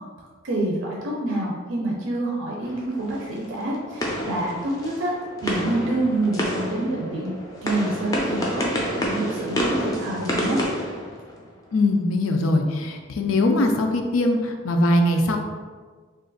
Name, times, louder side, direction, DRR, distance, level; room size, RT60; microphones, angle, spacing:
voice 1, 0.4-5.1 5.4-7.3 7.6-8.6 9.0-10.6, right 1 dB, 75° right, -3 dB, 0.5 m, -27 dB
sound 1, 2.6-11.7, equal, 20° left, 0.5 m, -29 dB
voice 2, 11.7-15.4, left 1 dB, 90° left, 4 dB, 0.4 m, -21 dB
2.5 x 2.4 x 3.8 m, 1.5 s
head